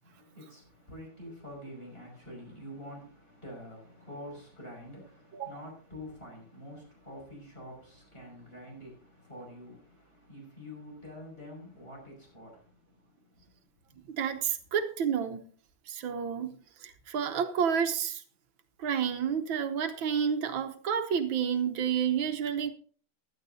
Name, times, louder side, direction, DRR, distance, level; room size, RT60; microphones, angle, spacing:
voice 1, 0.0-13.5 13.9-14.0, left 1 dB, 30° left, 6.2 m, -47 dB
voice 2, 5.3-5.6 14.1-15.5 15.9-18.2 18.8-22.7, right 7 dB, 80° right, 1.7 m, -30 dB
16.0 x 11.5 x 2.7 m
omnidirectional pair, 2.1 m